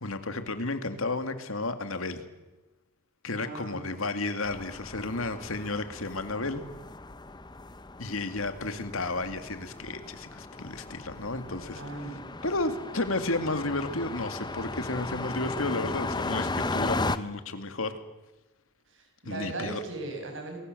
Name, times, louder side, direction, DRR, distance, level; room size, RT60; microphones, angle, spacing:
voice 1, 0.0-2.2 3.2-6.6 8.0-11.8 12.1-18.0 19.2-19.8, left 2 dB, 75° left, 9 dB, 2.3 m, -32 dB
voice 2, 3.3-4.0 11.8-12.3 18.9-20.6, right 2 dB, 60° right, 3 dB, 6.9 m, -38 dB
sound 1, 4.4-17.2, left 2 dB, 20° left, 0.8 m, -36 dB
29.5 x 21.5 x 7.8 m, 1.1 s
head